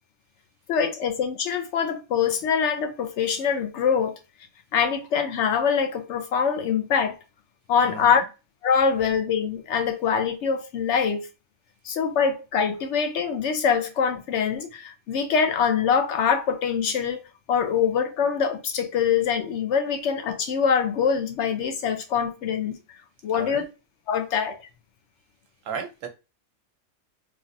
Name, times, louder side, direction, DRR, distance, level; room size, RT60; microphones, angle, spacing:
voice 1, 0.7-4.2 4.7-7.2 7.7-8.2 8.6-11.3 11.8-17.2 17.5-22.8 23.2-23.6 24.1-24.6, left 6 dB, 65° left, 0.8 m, -24 dB
voice 2, 7.8-8.2 23.3-23.6 25.6-26.1, right 5 dB, 70° right, 1.1 m, -34 dB
3.2 x 2.4 x 2.6 m
omnidirectional pair, 1.5 m